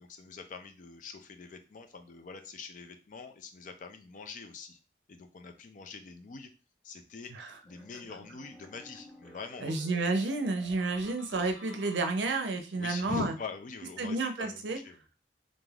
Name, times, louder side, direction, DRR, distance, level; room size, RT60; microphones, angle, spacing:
voice 1, 0.0-4.8 5.1-6.5 6.8-9.8 12.7-15.0, left 4 dB, 45° left, 7 dB, 0.4 m, -43 dB
sound 1, 7.7-12.6, left 1 dB, ahead, 0.9 m, -54 dB
voice 2, 9.6-13.3 14.0-14.8, right 3 dB, 85° right, 6 dB, 0.5 m, -31 dB
3.2 x 2.5 x 2.3 m, 0.32 s
head